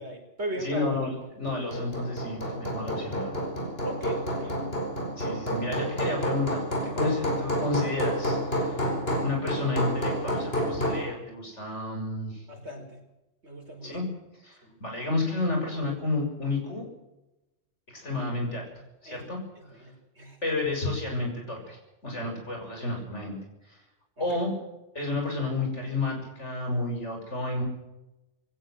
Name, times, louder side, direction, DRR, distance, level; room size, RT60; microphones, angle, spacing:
voice 1, 0.0-0.9 3.8-4.6 12.5-13.0 13.4-14.0 19.1-19.2 19.8-19.9 20.2-20.4 24.2-24.3, right 1 dB, 60° right, 3 dB, 5.2 m, -37 dB
voice 2, 0.5-3.5 5.2-6.6 6.9-8.8 9.2-12.4 13.8-14.1 14.4-16.9 17.9-18.7 19.0-19.4 20.4-23.4 23.7-23.8 24.2-24.5 25.0-27.6, left 2 dB, 70° left, 2 dB, 7.1 m, -31 dB
Hammer, 1.5-11.1, equal, 50° left, 4.7 m, -29 dB
20.5 x 17.5 x 7.8 m, 0.95 s
omnidirectional pair, 1.3 m